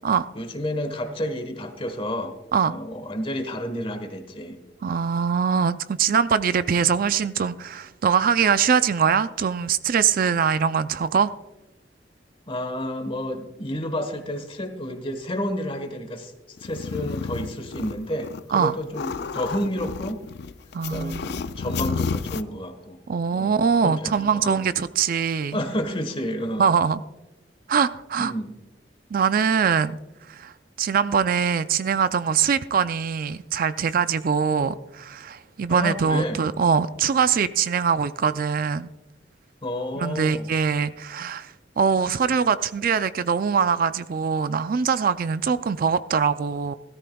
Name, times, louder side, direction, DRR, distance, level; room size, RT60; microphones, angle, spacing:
voice 1, 0.3-2.4 2.6-4.6 12.5-16.3 16.6-20.2 20.9-23.0 23.3-24.6 25.5-26.7 28.2-28.5 35.7-36.4 39.6-40.5, equal, 30° left, 1.3 m, -30 dB
voice 2, 4.8-11.3 18.5-18.7 20.7-21.3 23.1-25.6 26.6-27.0 27.7-28.3 29.1-30.0 30.3-30.5 30.8-38.9 40.0-46.7, right 6 dB, 55° right, 0.4 m, -22 dB
sound 1, 16.6-18.4 18.7-22.4, left 5 dB, 65° left, 0.4 m, -31 dB
16.5 x 13.5 x 2.3 m
head